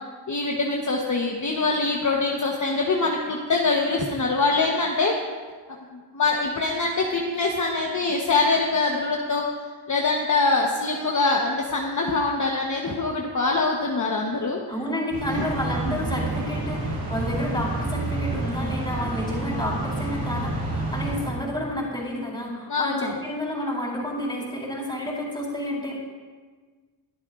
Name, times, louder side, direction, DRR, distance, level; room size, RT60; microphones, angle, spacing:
voice 1, 0.3-5.2 6.1-9.5 9.9-14.6 15.3-15.4 15.9-16.0 22.7-23.1, left 3 dB, 40° left, -1 dB, 1.2 m, -24 dB
voice 2, 14.7-26.0, left 1 dB, 10° left, -4 dB, 4.2 m, -30 dB
sound 1, 15.1-21.9, right 2 dB, 55° right, 4.4 m, -29 dB
22.0 x 12.0 x 2.5 m, 1.5 s
wide cardioid pair, 115°, 46 cm